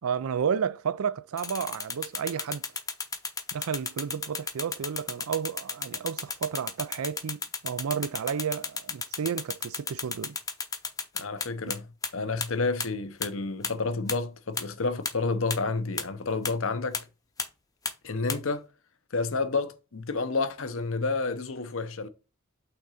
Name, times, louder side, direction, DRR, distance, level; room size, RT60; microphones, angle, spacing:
voice 1, 0.0-2.6 3.5-10.4 11.7-11.8, right 7 dB, 85° right, 0.4 m, -32 dB
sound 1, 1.4-11.8 12.0-12.1 12.4-12.5 12.8-12.9 13.2-13.3 13.6-13.7 14.1-14.2 14.6-14.7 15.1-15.2 15.5-15.6 16.0-16.1 16.5-16.6 16.9-17.0 17.4-17.5 17.9-18.0 18.3-18.4, left 5 dB, 15° left, 0.7 m, -32 dB
voice 2, 11.1-11.9 12.1-17.0 18.0-18.6 19.1-22.1, left 3 dB, 65° left, 0.8 m, -30 dB
5.9 x 3.8 x 5.5 m
head